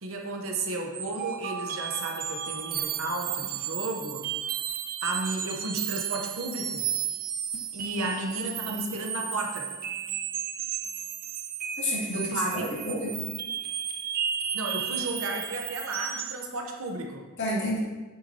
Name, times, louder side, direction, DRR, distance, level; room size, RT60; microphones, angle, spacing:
voice 1, 0.0-4.3 5.0-6.9 7.7-9.7 12.0-12.7 14.5-17.3, right 2 dB, 65° right, 2 dB, 1.0 m, -33 dB
sound 1, 0.9-16.4, right 9 dB, 40° right, 0.4 m, -33 dB
voice 2, 11.8-13.2 17.4-17.8, left 1 dB, 55° left, -6 dB, 2.3 m, -30 dB
8.5 x 5.6 x 2.9 m, 1.2 s
head